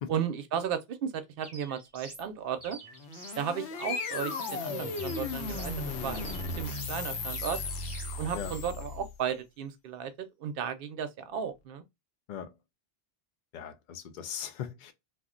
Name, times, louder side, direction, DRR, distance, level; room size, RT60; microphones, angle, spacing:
voice 1, 0.1-2.8 3.4-5.7 6.0-7.6 8.2-11.8, right 8 dB, 65° right, 0.7 m, -34 dB
sound 1, 1.4-2.3 2.6-3.4 3.8-4.6 5.0-5.8 6.1-7.0 7.3-8.1, right 2 dB, 25° right, 0.8 m, -48 dB
sound 2, 2.9-9.2, left 3 dB, 80° left, 0.9 m, -36 dB
voice 2, 13.5-14.9, left 8 dB, 55° left, 0.5 m, -39 dB
2.4 x 2.1 x 3.6 m
omnidirectional pair, 1.2 m